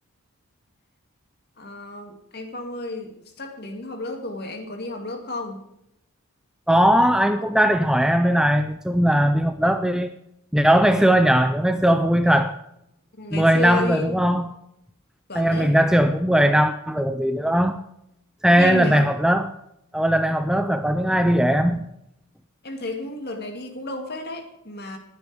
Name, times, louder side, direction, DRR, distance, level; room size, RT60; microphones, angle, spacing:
voice 1, 1.6-5.7 13.1-14.1 15.3-15.8 18.5-19.1 22.6-25.0, left 2 dB, 45° left, 4 dB, 2.4 m, -32 dB
voice 2, 6.7-10.1 10.5-12.6 13.3-14.5 15.3-17.8 18.4-19.5 19.9-21.8, equal, 5° right, 8 dB, 0.4 m, -19 dB
20.5 x 9.3 x 3.5 m, 0.81 s
head